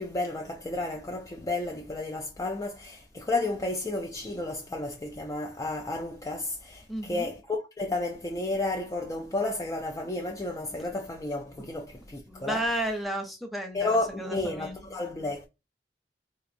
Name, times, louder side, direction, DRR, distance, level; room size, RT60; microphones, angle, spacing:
voice 1, 0.0-12.6 13.7-15.5, left 2 dB, 20° left, 0.4 m, -32 dB
voice 2, 6.9-7.3 11.6-11.7 12.3-14.9, right 1 dB, ahead, 0.8 m, -33 dB
3.8 x 2.5 x 2.5 m
head